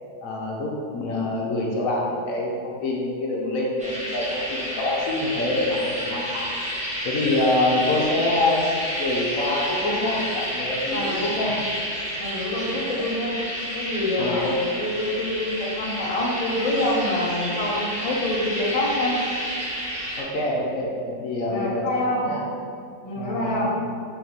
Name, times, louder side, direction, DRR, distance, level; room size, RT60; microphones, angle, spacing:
voice 1, 0.2-6.5 7.0-11.6 14.2-14.6 20.2-22.4 23.1-23.7, left 2 dB, 65° left, -2 dB, 1.0 m, -26 dB
sound 1, 3.8-20.2, equal, 5° right, 0.5 m, -30 dB
voice 2, 10.9-11.3 12.2-13.4 13.7-19.2 21.5-22.3 23.0-23.8, left 1 dB, 45° left, -4 dB, 0.4 m, -26 dB
4.5 x 3.0 x 4.0 m, 2.4 s
omnidirectional pair, 1.7 m